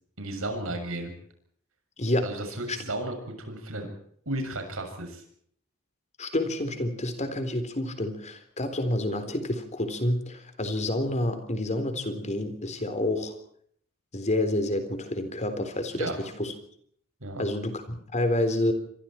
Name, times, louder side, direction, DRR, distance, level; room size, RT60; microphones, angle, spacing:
voice 1, 0.2-1.1 2.2-3.9 4.2-5.2 15.9-16.2 17.2-17.4, right 1 dB, 70° right, 4 dB, 6.8 m, -33 dB
voice 2, 6.2-13.3 14.1-16.5 17.4-18.7, left 1 dB, 35° left, 9 dB, 3.7 m, -28 dB
27.5 x 25.0 x 4.5 m, 0.64 s
head